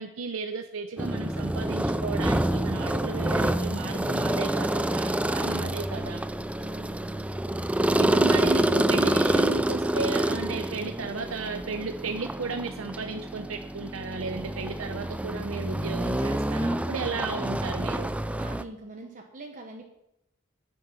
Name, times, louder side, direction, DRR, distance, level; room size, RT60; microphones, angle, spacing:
voice 1, 0.0-6.2 7.9-18.1, right 4 dB, 75° right, 6 dB, 0.7 m, -34 dB
sound 1, 1.0-18.6, right 1 dB, 5° right, 0.4 m, -27 dB
voice 2, 6.6-7.2 18.4-19.9, right 2 dB, 40° right, 1 dB, 1.2 m, -44 dB
10.5 x 9.7 x 5.5 m, 0.84 s
head